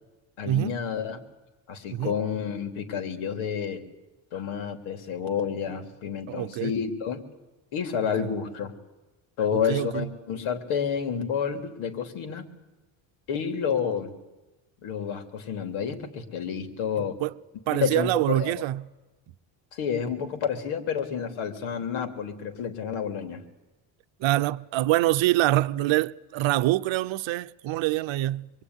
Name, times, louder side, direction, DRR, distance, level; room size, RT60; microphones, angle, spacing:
voice 1, 0.4-1.2 1.7-3.9 4.3-7.2 7.7-8.7 9.4-12.5 13.3-14.1 14.8-17.2 17.7-18.6 19.7-23.4, left 7 dB, 75° left, 3.5 m, -30 dB
voice 2, 6.3-6.7 8.2-8.3 9.5-10.1 17.0-17.3 17.7-18.9 24.2-28.5, right 16 dB, 70° right, 0.9 m, -25 dB
26.0 x 22.5 x 9.8 m
cardioid pair, 155°, 48 cm